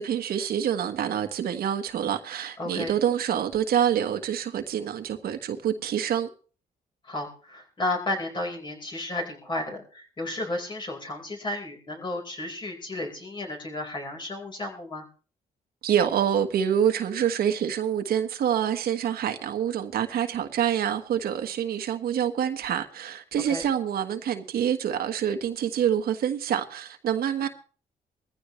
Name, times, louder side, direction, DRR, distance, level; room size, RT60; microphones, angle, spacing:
voice 1, 0.0-6.3 15.8-27.5, right 9 dB, 80° right, 1.5 m, -26 dB
voice 2, 2.6-2.9 7.0-15.0 23.5-23.7 27.4-27.5, left 2 dB, 30° left, 4.6 m, -33 dB
20.0 x 15.0 x 3.2 m
cardioid pair, 125°, 15 cm